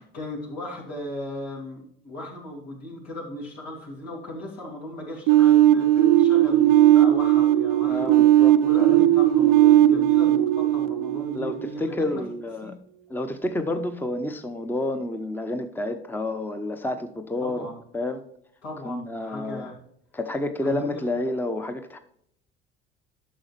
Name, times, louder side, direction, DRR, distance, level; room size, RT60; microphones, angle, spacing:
voice 1, 0.0-12.2 12.6-12.8 17.4-17.8 18.6-19.7 20.6-21.0, left 1 dB, 75° left, -3 dB, 3.1 m, -37 dB
sound 1, 5.3-12.0, right 13 dB, 65° right, 0.6 m, -18 dB
voice 2, 7.9-8.5 11.3-12.8 13.1-18.2 18.8-19.7 20.1-22.0, left 1 dB, 5° left, 8 dB, 0.8 m, -29 dB
11.0 x 6.4 x 3.2 m, 0.70 s
hypercardioid pair, 60°, 31 cm